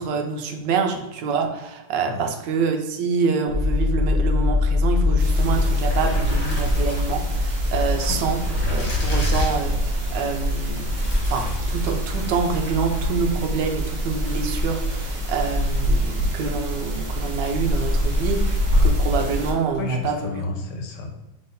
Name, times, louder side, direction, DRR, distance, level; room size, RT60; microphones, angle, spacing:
voice 1, 0.0-10.9 11.2-20.4, right 5 dB, 75° right, 4 dB, 1.3 m, -26 dB
sound 1, 3.5-17.3 17.6-18.5, left 3 dB, 35° right, 0.9 m, -26 dB
sound 2, 5.0-19.9, left 1 dB, 40° left, 1.6 m, -26 dB
sound 3, 5.2-19.5, right 1 dB, 50° right, 1.3 m, -29 dB
voice 2, 19.8-21.1, left 3 dB, 70° left, 4 dB, 1.4 m, -32 dB
3.9 x 3.4 x 4.0 m, 0.99 s
omnidirectional pair, 2.0 m